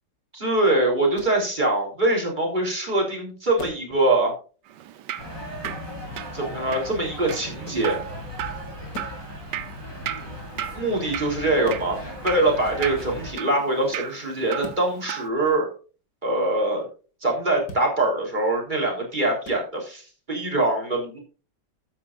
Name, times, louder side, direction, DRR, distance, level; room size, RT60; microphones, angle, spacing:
voice 1, 0.3-4.3 6.3-8.0 10.7-12.0 12.2-15.7 16.2-16.9 17.2-21.2, right 2 dB, 25° right, 0 dB, 3.8 m, -23 dB
sound 1, 1.1-1.4 3.6-3.9 5.6-5.9 7.6-7.9 8.9-9.2 11.6-11.9 14.6-14.9 17.6-17.9 19.4-19.6, left 3 dB, 75° left, 2.6 m, -39 dB
Drip, 4.7-15.3, right 11 dB, 75° right, 1.4 m, -36 dB
sound 2, 5.2-13.3, left 1 dB, 15° left, 5.0 m, -37 dB
13.0 x 9.5 x 2.5 m, 0.35 s
omnidirectional pair, 1.9 m